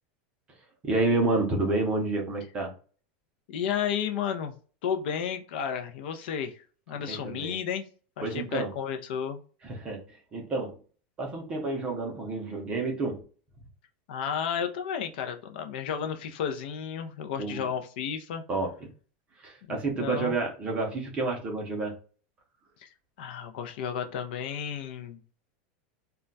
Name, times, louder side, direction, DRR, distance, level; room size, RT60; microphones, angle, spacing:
voice 1, 0.8-2.7 6.9-7.6 8.2-8.7 9.6-10.8 11.2-13.2 17.4-17.7 18.5-18.9 19.4-22.0, right 2 dB, 20° right, 0.6 m, -29 dB
voice 2, 3.5-4.5 4.8-6.6 6.9-7.9 8.2-9.4 14.1-18.4 19.7-20.3 22.8-22.9 23.2-25.2, left 8 dB, 65° left, 0.4 m, -32 dB
2.2 x 2.2 x 3.8 m
supercardioid pair, 175°, 6 cm